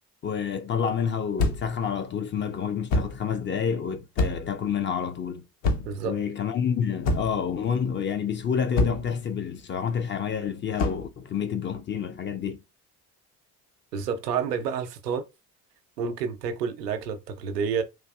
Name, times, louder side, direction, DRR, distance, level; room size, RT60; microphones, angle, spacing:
voice 1, 0.2-5.4 6.0-12.6, left 7 dB, 25° left, 0.4 m, -28 dB
sound 1, 1.4-1.8 2.9-3.2 4.2-4.6 5.6-6.0 7.0-7.5 8.8-9.1 10.8-11.1, left 2 dB, 65° left, 0.9 m, -26 dB
voice 2, 5.8-6.2 13.9-15.2 16.0-17.8, right 6 dB, 85° right, 0.6 m, -29 dB
3.7 x 2.6 x 2.3 m
figure-of-eight pair, 50°, 48 cm